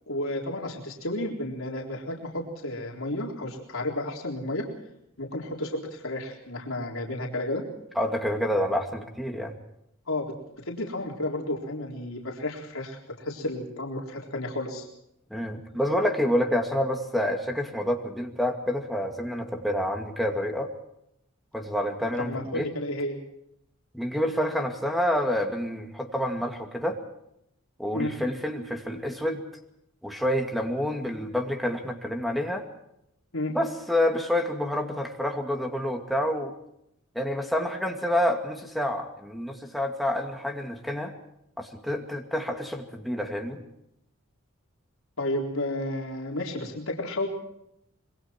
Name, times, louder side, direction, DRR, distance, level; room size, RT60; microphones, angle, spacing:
voice 1, 0.1-4.7 5.2-7.6 10.1-14.9 22.2-23.2 27.9-28.1 33.3-33.5 45.2-47.3, left 1 dB, 75° left, 0 dB, 4.0 m, -32 dB
voice 2, 8.0-9.5 15.3-20.7 21.5-22.7 23.9-27.0 27.8-29.4 30.0-32.6 33.5-36.5 37.1-41.1 41.6-43.6, left 1 dB, ahead, 2 dB, 2.4 m, -28 dB
26.0 x 22.5 x 4.5 m, 0.79 s
head